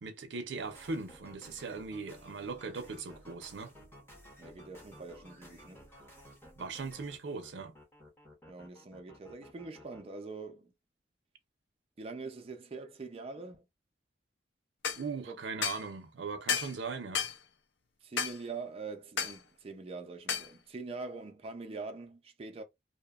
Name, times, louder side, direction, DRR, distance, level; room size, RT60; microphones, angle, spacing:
voice 1, 0.0-3.7 6.6-7.7 15.0-17.3, right 4 dB, 90° right, 0.5 m, -39 dB
sound 1, 0.6-10.0, equal, 15° left, 0.9 m, -55 dB
voice 2, 4.4-5.8 8.5-10.7 12.0-13.7 15.3-15.4 18.0-22.6, right 3 dB, 35° right, 0.4 m, -44 dB
sound 2, 14.8-15.0 15.6-15.8 16.5-16.8 17.2-17.4 18.2-18.4 19.2-19.4 20.3-20.5, left 7 dB, 85° left, 0.5 m, -32 dB
2.8 x 2.1 x 2.3 m
head